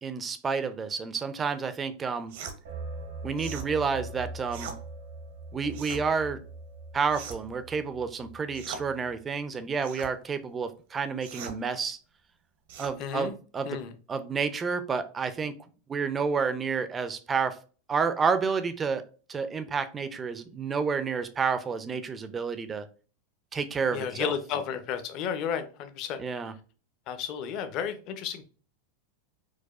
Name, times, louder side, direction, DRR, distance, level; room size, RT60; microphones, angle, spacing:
voice 1, 0.0-2.3 3.2-4.8 5.5-6.4 6.9-12.0 12.8-13.8 14.1-15.5 15.9-17.6 17.9-22.9 23.5-24.3 26.2-26.5, right 5 dB, 20° right, 11 dB, 0.4 m, -30 dB
sound 1, 2.3-2.6 3.4-3.7 4.5-4.8 5.7-6.0 7.1-7.5 8.5-8.9 9.8-10.1 11.2-11.6 12.7-13.0, right 6 dB, 70° right, 0.7 m, -40 dB
sound 2, 2.6-9.2, right 2 dB, 90° right, 1.3 m, -42 dB
voice 2, 13.0-13.3 13.7-13.9 23.9-26.2 27.1-28.5, left 8 dB, 40° left, 9 dB, 0.5 m, -32 dB
4.7 x 2.2 x 2.3 m, 0.37 s
supercardioid pair, 150°, 0 cm